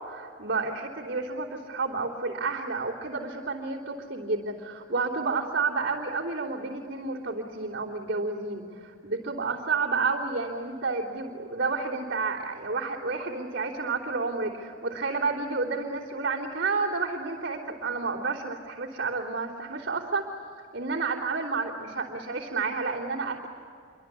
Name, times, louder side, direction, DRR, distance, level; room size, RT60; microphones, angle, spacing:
voice 1, 0.1-20.3 20.7-23.5, right 4 dB, 50° right, -6 dB, 3.4 m, -30 dB
28.5 x 24.5 x 8.4 m, 2.4 s
head